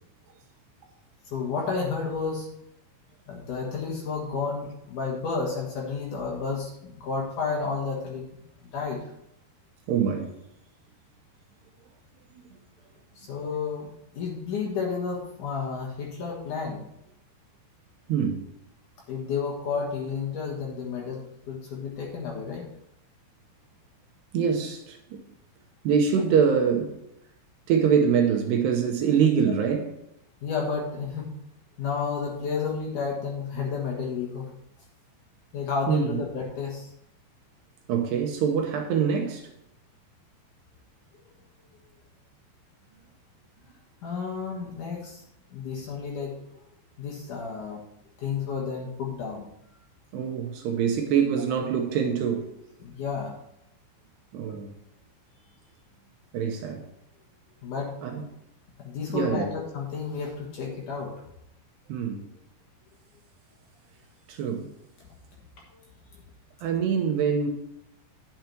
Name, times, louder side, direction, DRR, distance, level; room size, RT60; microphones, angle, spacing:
voice 1, 1.3-2.5 3.3-8.2 8.7-9.1 13.2-13.9 14.1-16.8 19.1-21.2 21.5-22.7 30.4-31.3 31.8-34.5 35.5-36.9 44.0-45.2 45.5-46.5 47.0-47.8 48.2-49.5 52.8-53.3 57.6-57.9 58.8-61.1, left 5 dB, 70° left, 1.9 m, -31 dB
voice 2, 9.9-10.3 12.3-12.4 18.1-18.4 24.3-25.2 25.8-27.0 27.7-29.9 35.9-36.2 37.9-39.5 50.1-52.5 54.3-54.7 56.3-56.9 58.0-58.2 59.1-59.5 61.9-62.3 64.3-64.7 66.6-67.5, right 7 dB, 75° right, 2.6 m, -24 dB
9.3 x 7.0 x 4.5 m
omnidirectional pair, 5.7 m